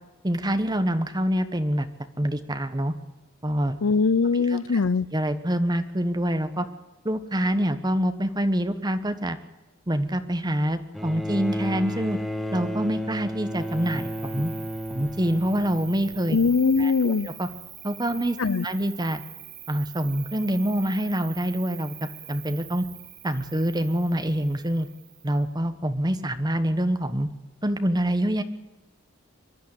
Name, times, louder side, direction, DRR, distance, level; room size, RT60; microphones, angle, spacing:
voice 1, 0.2-1.9 2.2-2.9 3.4-3.8 4.5-4.8 5.1-6.7 7.0-9.4 9.9-12.2 12.5-14.5 14.9-16.4 16.8-17.5 17.8-18.4 18.6-19.2 19.7-22.8 23.2-24.9 25.2-27.3 27.6-28.4, equal, 20° right, 1.2 m, -26 dB
voice 2, 3.8-5.1 16.3-17.3 18.4-18.6, left 4 dB, 75° left, 0.6 m, -21 dB
Bowed string instrument, 10.9-16.4 17.5-17.6, equal, ahead, 1.2 m, -33 dB
Cricket, 13.5-25.5, right 11 dB, 80° right, 4.1 m, -44 dB
24.0 x 11.5 x 9.7 m
head